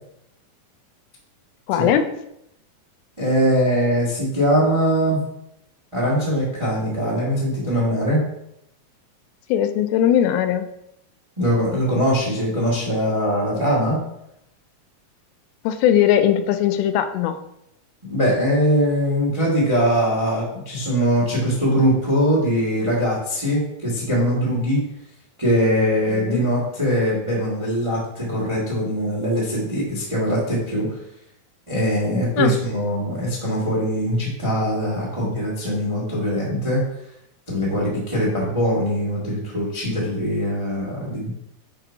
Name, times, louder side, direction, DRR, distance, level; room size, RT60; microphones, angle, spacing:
voice 1, 1.7-2.1 9.5-10.7 15.6-17.4 26.1-26.5 32.4-32.6, left 10 dB, 85° left, 10 dB, 2.4 m, -19 dB
voice 2, 3.2-5.2 5.9-8.2 11.4-14.0 18.1-24.9 25.4-30.9 31.7-36.9 37.5-41.3, equal, 30° right, -5 dB, 0.5 m, -21 dB
8.2 x 2.9 x 4.6 m, 0.79 s
omnidirectional pair, 4.3 m